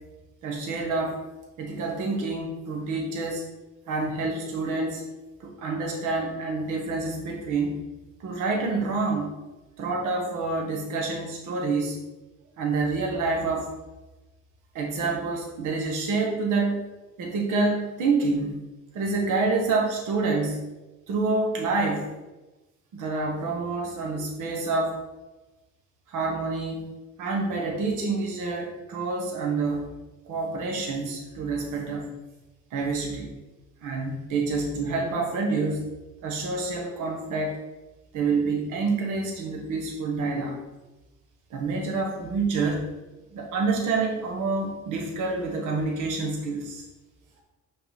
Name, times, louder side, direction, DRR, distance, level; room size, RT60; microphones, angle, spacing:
voice 1, 0.4-1.2 1.6-3.4 3.9-5.0 5.4-7.8 8.2-9.3 9.8-12.0 12.6-13.7 14.7-16.8 17.2-18.5 18.9-20.6 21.1-22.1 22.9-25.0 26.1-26.9 27.2-29.9 30.3-32.1 32.7-33.3 33.8-35.8 36.2-37.6 38.1-40.6 41.5-42.8 43.3-46.8, right 3 dB, 90° right, 0 dB, 1.3 m, -27 dB
5.6 x 3.9 x 5.7 m, 1.1 s
cardioid pair, 90°, 30 cm